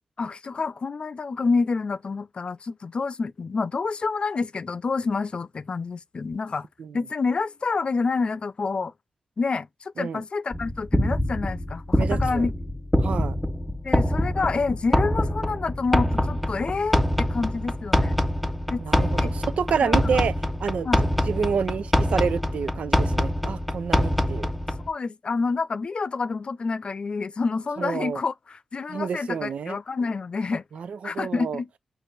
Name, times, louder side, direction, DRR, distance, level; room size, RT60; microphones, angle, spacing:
voice 1, 0.2-6.7 6.9-8.9 9.4-12.5 13.8-18.2 18.7-19.3 19.8-20.2 20.8-21.1 24.9-30.6 31.0-31.7, left 4 dB, 55° left, 0.5 m, -28 dB
sound 1, 10.5-24.9, equal, ahead, 0.9 m, -25 dB
voice 2, 12.0-12.5 13.0-13.4 18.8-20.3 20.6-20.9 21.3-24.5 27.8-28.2 28.9-29.8 30.7-31.6, right 6 dB, 80° right, 0.5 m, -28 dB
5.1 x 2.5 x 4.0 m
supercardioid pair, 40°, 2 cm